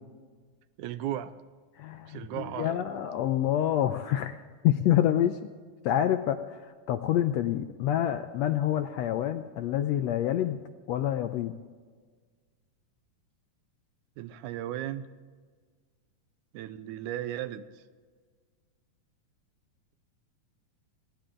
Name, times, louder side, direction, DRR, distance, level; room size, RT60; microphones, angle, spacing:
voice 1, 0.8-1.3 2.1-2.9 14.2-15.1 16.5-17.7, right 12 dB, 85° right, 12 dB, 2.1 m, -35 dB
voice 2, 1.8-4.4 4.6-5.4 5.8-10.6 10.9-11.5, left 11 dB, 75° left, 8 dB, 1.6 m, -27 dB
21.0 x 15.5 x 3.8 m, 1.5 s
omnidirectional pair, 3.6 m